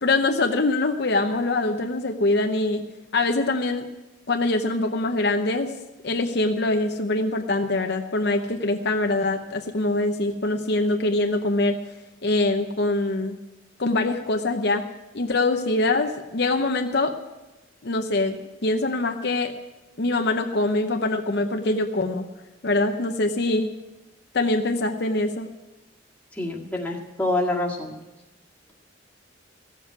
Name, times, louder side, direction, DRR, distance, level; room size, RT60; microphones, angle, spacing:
voice 1, 0.0-2.8 3.1-3.9 4.3-5.7 6.0-11.8 12.2-13.4 13.8-14.8 15.1-17.2 17.8-18.4 18.6-19.5 20.0-22.3 22.6-23.7 24.3-25.5, left 2 dB, 55° left, 5 dB, 0.8 m, -23 dB
voice 2, 26.4-27.9, left 1 dB, 10° left, -3 dB, 1.9 m, -26 dB
15.0 x 7.4 x 9.5 m, 1.1 s
head